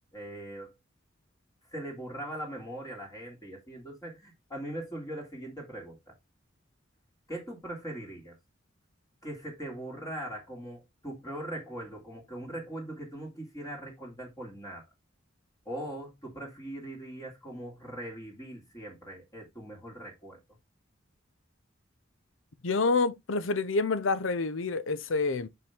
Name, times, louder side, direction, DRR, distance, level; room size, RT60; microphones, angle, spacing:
voice 1, 0.1-0.7 1.7-6.1 7.3-8.3 9.2-14.8 15.7-20.4, right 1 dB, 20° left, 2.2 m, -40 dB
voice 2, 22.6-25.5, left 3 dB, 70° left, 0.7 m, -28 dB
5.8 x 5.4 x 3.4 m
head